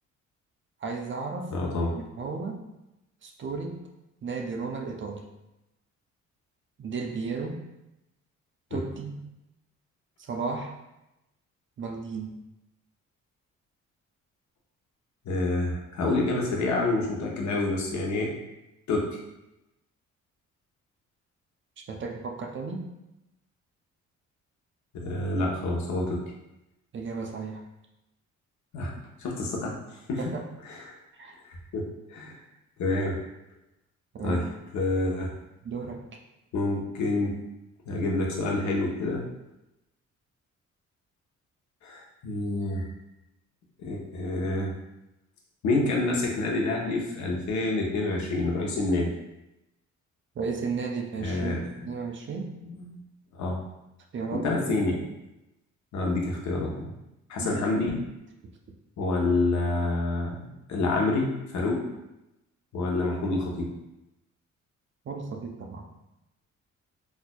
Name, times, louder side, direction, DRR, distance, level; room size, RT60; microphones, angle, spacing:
voice 1, 0.8-1.5 2.0-2.7 3.2-3.9 4.2-5.3 6.8-7.7 8.7-9.1 10.2-10.8 11.8-12.4 21.9-23.0 26.9-27.7 30.2-30.4 31.1-31.4 34.1-34.5 35.6-36.1 50.4-51.5 51.9-52.5 54.1-55.0 57.4-57.6 65.1-65.9, right 4 dB, 40° right, 3 dB, 0.5 m, -34 dB
voice 2, 1.5-2.0 8.7-8.8 15.3-18.3 18.9-19.1 24.9-26.2 28.7-28.9 29.2-29.7 30.1-30.2 30.7-30.8 31.4-32.4 32.8-33.2 34.2-34.4 34.7-35.3 36.5-37.4 37.9-39.2 41.8-42.9 43.8-44.7 45.6-49.1 51.2-51.9 52.8-53.0 53.3-53.6 54.3-55.0 55.9-56.9 57.3-58.0 59.0-60.4 60.7-61.8 62.7-63.7, left 2 dB, 65° left, -1 dB, 0.8 m, -27 dB
4.1 x 2.5 x 2.2 m, 0.92 s
cardioid pair, 90°, 30 cm